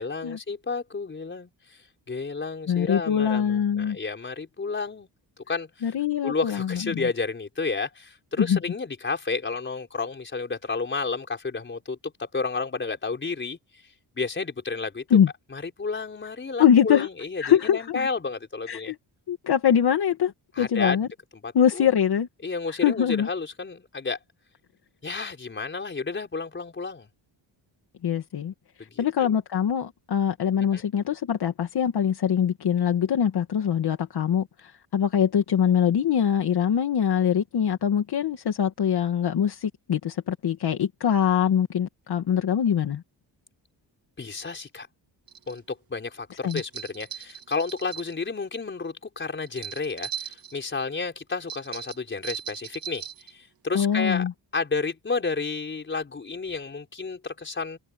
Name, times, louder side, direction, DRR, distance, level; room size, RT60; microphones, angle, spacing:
voice 1, 0.0-5.1 5.5-5.9 6.2-13.6 14.2-15.2 15.5-18.9 20.5-21.0 21.3-21.9 22.4-24.2 25.0-27.1 28.8-29.3 30.5-30.8 44.2-44.9 45.5-57.8, left 4 dB, 25° left, 4.7 m, -31 dB
voice 2, 2.7-4.0 5.8-7.0 8.4-8.6 15.1-15.3 16.6-17.1 17.4-18.1 18.7-19.0 19.3-20.3 20.6-21.1 21.5-22.3 22.8-23.3 28.0-28.5 29.0-43.0 46.4-46.6 53.7-54.3, left 8 dB, 55° left, 2.2 m, -23 dB
sound 1, 45.3-45.6 46.5-48.1 49.5-50.6 51.5-53.3, right 9 dB, 50° right, 3.0 m, -38 dB
wide cardioid pair, 160°, 45 cm